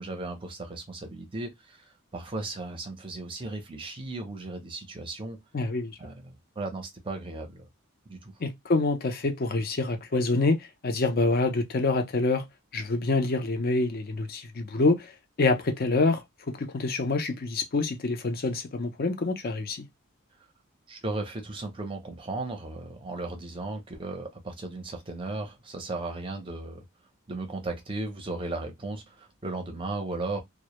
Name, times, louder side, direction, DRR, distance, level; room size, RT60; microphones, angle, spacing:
voice 1, 0.0-1.8 2.1-5.4 6.0-7.7 8.1-8.3 20.9-26.8 27.3-30.4, right 2 dB, 25° right, 0.6 m, -36 dB
voice 2, 5.5-6.0 8.4-12.4 12.7-15.1 15.4-19.9, left 3 dB, 45° left, 0.5 m, -26 dB
2.1 x 2.0 x 2.8 m
head